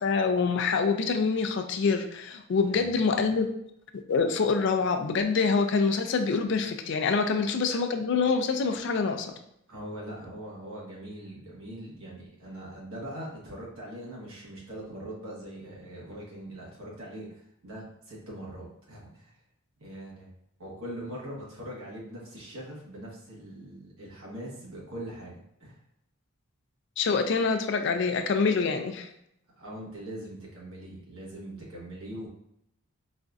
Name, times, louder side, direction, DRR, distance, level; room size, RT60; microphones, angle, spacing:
voice 1, 0.0-3.5 4.1-9.3 27.0-29.1, left 4 dB, 55° left, 6 dB, 0.3 m, -26 dB
voice 2, 2.6-3.3 9.7-19.4 19.8-20.3 20.6-25.8 29.6-32.3, right 1 dB, 80° right, -5 dB, 1.2 m, -42 dB
4.1 x 2.6 x 2.3 m, 0.76 s
head